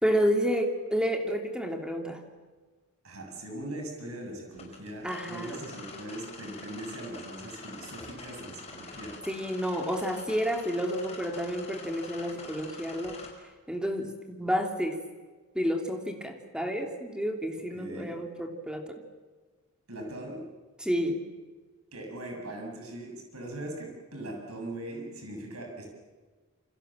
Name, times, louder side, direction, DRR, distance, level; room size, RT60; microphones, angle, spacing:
voice 1, 0.0-2.2 5.0-5.6 9.3-13.2 13.7-15.0 15.5-19.0 20.8-21.2, equal, 5° right, 3 dB, 3.0 m, -30 dB
voice 2, 3.0-9.2 17.7-18.2 19.9-20.4 21.9-25.9, right 1 dB, 75° right, 1 dB, 7.6 m, -40 dB
sound 1, 4.5-13.3, left 4 dB, 30° left, 5.7 m, -46 dB
28.5 x 26.0 x 7.5 m, 1.4 s
head